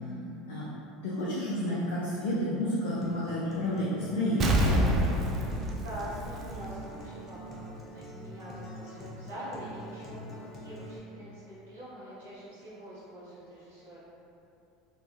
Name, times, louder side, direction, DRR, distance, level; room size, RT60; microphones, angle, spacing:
voice 1, 1.0-5.1, left 1 dB, 80° left, -7 dB, 0.4 m, -30 dB
Acoustic guitar, 3.0-11.0, equal, 35° left, 0.7 m, -45 dB
Explosion, 4.4-7.0 7.3-7.4, right 1 dB, 45° right, 0.3 m, -27 dB
voice 2, 5.8-14.1, equal, 85° right, -11 dB, 0.8 m, -44 dB
2.9 x 2.3 x 2.4 m, 2.8 s
hypercardioid pair, 80°, 0 cm